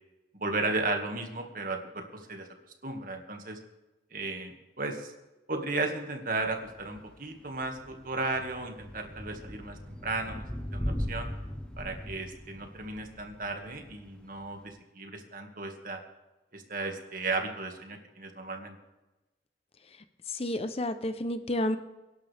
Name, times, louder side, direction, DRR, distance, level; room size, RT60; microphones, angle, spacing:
voice 1, 0.3-2.5 2.8-3.6 4.1-5.1 5.5-10.5 10.7-11.3 11.8-16.0 16.5-18.8, right 3 dB, 50° right, 4 dB, 2.1 m, -35 dB
Thunder / Rain, 6.4-14.7, equal, 5° left, 1.1 m, -40 dB
voice 2, 20.3-21.8, left 1 dB, 35° left, 10 dB, 0.8 m, -30 dB
24.0 x 11.5 x 3.5 m, 1.0 s
head